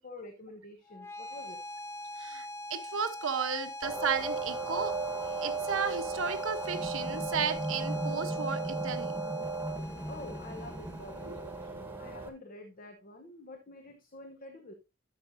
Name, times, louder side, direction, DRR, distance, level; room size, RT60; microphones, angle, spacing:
voice 1, 0.0-1.6 10.0-14.7, left 2 dB, 45° left, 5 dB, 1.1 m, -48 dB
sound 1, 0.9-11.9, left 1 dB, 15° left, 0.4 m, -44 dB
voice 2, 2.2-4.9 5.3-9.2 11.2-11.4, right 6 dB, 80° right, 8 dB, 1.1 m, -34 dB
sound 2, 3.8-12.3, right 3 dB, 10° right, 1.4 m, -35 dB
12.0 x 6.7 x 2.7 m, 0.27 s
head